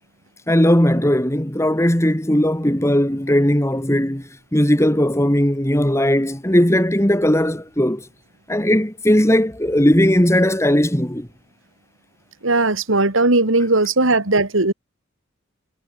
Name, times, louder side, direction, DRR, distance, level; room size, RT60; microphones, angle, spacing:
voice 1, 0.5-8.1 8.5-11.3, equal, 15° left, 2.5 m, -18 dB
voice 2, 12.4-14.7, right 2 dB, 80° right, 2.7 m, -17 dB
head